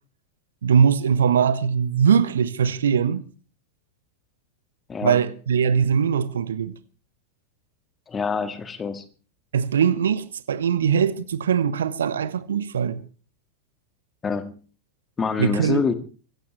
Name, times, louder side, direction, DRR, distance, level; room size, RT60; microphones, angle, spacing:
voice 1, 0.6-3.2 5.0-6.7 9.5-13.0 15.4-15.8, right 7 dB, 65° right, 1.1 m, -21 dB
voice 2, 4.9-5.2 8.1-9.0 14.2-14.6 15.2-15.9, left 5 dB, 20° left, 1.8 m, -26 dB
24.5 x 15.5 x 3.2 m
figure-of-eight pair, 90°, 0 cm